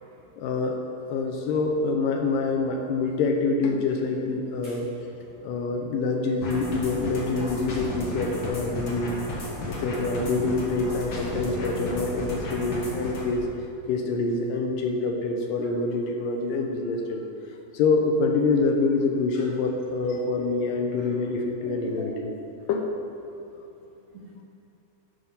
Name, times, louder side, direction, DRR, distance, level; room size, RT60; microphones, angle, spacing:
voice 1, 0.4-4.9 5.4-9.2 9.7-13.5 13.9-17.2 17.7-22.3 22.7-22.8, left 3 dB, 75° left, 2 dB, 2.3 m, -26 dB
sound 1, 6.4-13.2, left 1 dB, 50° left, 1.6 m, -34 dB
voice 2, 21.6-22.2 24.1-24.4, right 3 dB, 70° right, -5 dB, 1.6 m, -41 dB
11.5 x 4.8 x 5.6 m, 2.8 s
omnidirectional pair, 4.1 m